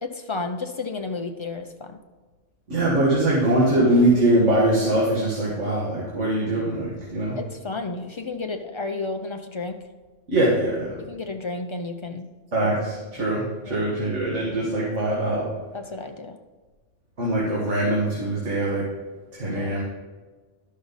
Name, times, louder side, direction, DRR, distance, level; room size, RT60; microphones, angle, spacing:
voice 1, 0.0-2.0 7.4-9.8 11.0-12.3 13.6-13.9 15.7-16.4 19.4-19.8, left 3 dB, 40° left, 5 dB, 0.4 m, -32 dB
voice 2, 2.7-7.4 10.3-10.9 12.5-15.5 17.2-18.9 19.3-19.8, right 1 dB, 75° right, -5 dB, 2.1 m, -22 dB
11.5 x 6.3 x 4.0 m, 1.3 s
omnidirectional pair, 1.3 m